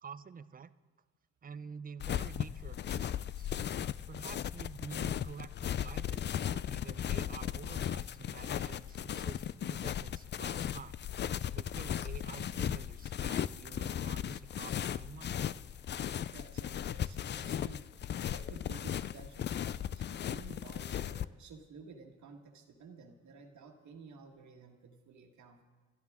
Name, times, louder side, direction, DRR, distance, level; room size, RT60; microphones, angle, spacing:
voice 1, 0.0-0.7 1.4-3.5 4.1-11.0 11.5-15.4, right 6 dB, 30° right, 14 dB, 0.6 m, -49 dB
sound 1, 2.0-21.2, left 10 dB, 35° left, 0.4 m, -37 dB
voice 2, 16.3-17.9 18.3-25.6, right 4 dB, 70° right, 3 dB, 1.7 m, -53 dB
27.0 x 12.5 x 3.6 m, 1.4 s
cardioid pair, 90°, 30 cm